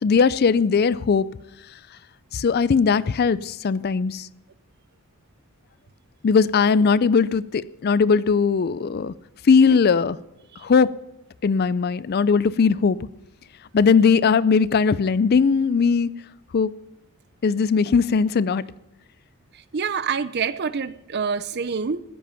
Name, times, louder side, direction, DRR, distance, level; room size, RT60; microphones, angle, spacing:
voice 1, 0.0-1.3 2.3-4.3 6.2-9.1 9.4-10.2 10.6-10.9 11.4-13.0 13.7-16.1 16.5-16.7 17.4-18.6, left 5 dB, 45° left, 0.4 m, -19 dB
voice 2, 19.7-22.0, right 6 dB, 50° right, 0.6 m, -26 dB
15.5 x 10.5 x 5.7 m
head